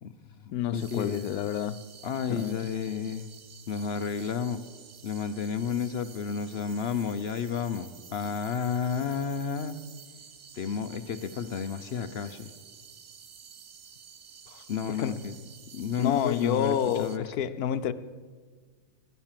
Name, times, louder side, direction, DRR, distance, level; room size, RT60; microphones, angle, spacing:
voice 1, 0.0-0.4 0.7-1.3 2.0-3.3 3.7-4.6 5.0-9.8 10.5-12.5 14.7-15.4 15.7-17.3, left 6 dB, 55° left, 10 dB, 0.8 m, -31 dB
voice 2, 0.5-1.8 2.3-2.6 14.5-14.6 15.0-15.1 16.0-17.9, left 9 dB, 80° left, 13 dB, 1.2 m, -29 dB
sound 1, 0.7-17.2, right 7 dB, 55° right, 0.5 m, -51 dB
16.5 x 10.5 x 7.5 m, 1.5 s
omnidirectional pair, 1.6 m